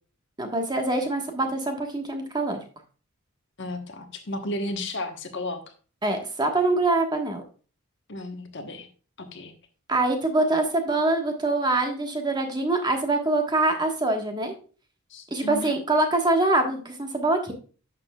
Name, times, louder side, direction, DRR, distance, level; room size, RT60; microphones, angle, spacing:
voice 1, 0.4-2.6 6.0-7.4 9.9-14.5 15.3-17.5, right 2 dB, 20° right, 4 dB, 1.4 m, -24 dB
voice 2, 3.6-5.6 8.1-8.9 9.2-9.5 15.1-15.7, left 1 dB, 55° left, 6 dB, 1.2 m, -33 dB
11.0 x 6.7 x 2.3 m, 0.38 s
head